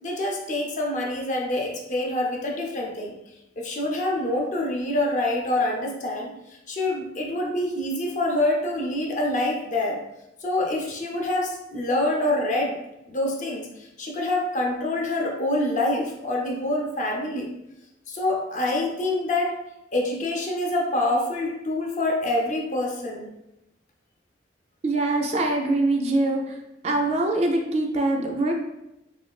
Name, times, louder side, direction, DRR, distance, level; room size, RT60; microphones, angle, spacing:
voice 1, 0.0-3.2 3.6-6.3 6.7-10.0 10.4-12.8 13.1-13.7 14.0-17.5 18.1-19.5 19.9-23.3, left 1 dB, 40° left, 0 dB, 0.5 m, -26 dB
voice 2, 24.8-26.4 26.8-28.5, right 2 dB, 35° right, 2 dB, 0.3 m, -23 dB
3.1 x 2.9 x 2.3 m, 0.88 s
head